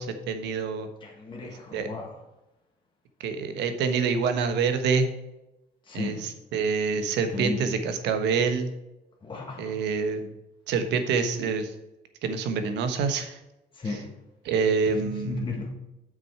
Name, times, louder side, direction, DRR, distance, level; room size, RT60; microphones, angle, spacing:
voice 1, 0.0-0.9 1.4-1.9 3.2-5.1 5.9-8.7 9.6-10.3 10.7-11.7 12.2-13.4 13.8-14.0 14.4-15.4, right 5 dB, 80° right, 1.2 m, -27 dB
voice 2, 1.0-2.1 5.9-6.2 7.3-7.6 9.2-9.8 13.8-14.1 15.0-15.7, left 3 dB, 25° left, 1.5 m, -34 dB
7.8 x 6.2 x 4.5 m
cardioid pair, 95°, 18 cm